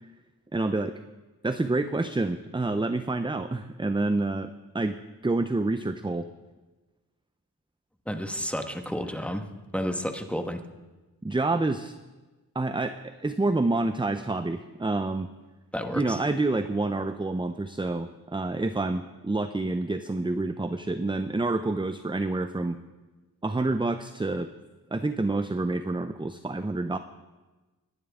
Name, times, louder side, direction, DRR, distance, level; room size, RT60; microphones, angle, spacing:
voice 1, 0.5-1.0 1.4-5.0 5.2-6.3 11.2-11.9 12.5-15.3 15.9-22.8 23.4-24.5 24.9-27.0, right 2 dB, 15° right, 10 dB, 0.5 m, -28 dB
voice 2, 8.1-9.5 9.7-10.6 15.7-16.2, equal, 5° left, 5 dB, 1.4 m, -31 dB
26.0 x 11.0 x 3.7 m, 1.2 s
wide cardioid pair, 50°, 38 cm